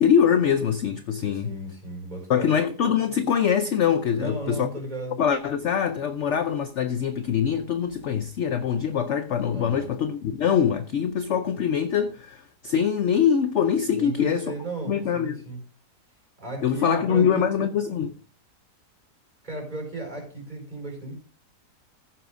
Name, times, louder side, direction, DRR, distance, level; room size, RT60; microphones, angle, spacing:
voice 1, 0.0-1.5 2.3-4.7 5.2-14.5 14.9-15.4 16.6-18.1, left 8 dB, 60° left, 0.8 m, -23 dB
voice 2, 1.2-2.5 4.1-5.2 9.5-9.9 13.9-15.6 16.4-17.5 19.4-21.1, right 2 dB, 25° right, 4.9 m, -34 dB
14.5 x 10.0 x 2.5 m
omnidirectional pair, 1.7 m